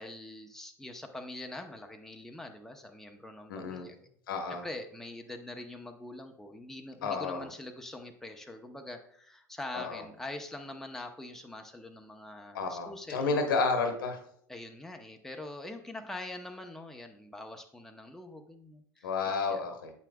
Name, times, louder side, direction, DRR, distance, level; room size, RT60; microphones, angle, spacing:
voice 1, 0.0-13.5 14.5-19.6, left 1 dB, 5° left, 3 dB, 0.7 m, -44 dB
voice 2, 3.5-3.9 4.3-4.6 7.0-7.4 9.7-10.0 12.5-14.2 19.0-19.9, left 4 dB, 85° left, 5 dB, 1.2 m, -31 dB
8.1 x 5.8 x 2.3 m, 0.65 s
hypercardioid pair, 90°, 11 cm